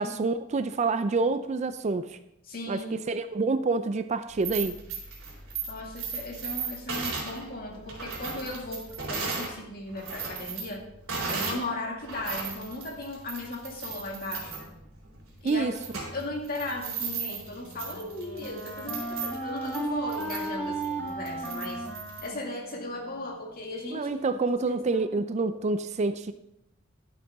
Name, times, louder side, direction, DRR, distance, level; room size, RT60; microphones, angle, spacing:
voice 1, 0.0-2.2 2.7-4.8 15.4-15.7 23.9-26.3, right 3 dB, 35° right, 11 dB, 0.4 m, -27 dB
voice 2, 2.4-3.0 5.7-10.9 11.3-14.7 15.4-15.8 16.1-21.9 22.2-24.1 25.2-25.3, left 2 dB, 45° left, 0 dB, 2.2 m, -37 dB
sound 1, 4.3-9.5 9.9-11.7 12.0-22.3, right 5 dB, 70° right, 3.7 m, -36 dB
Wind instrument woodwind instrument, 17.5-23.3, right 2 dB, 10° left, 1.6 m, -36 dB
11.5 x 9.1 x 3.6 m, 0.81 s
head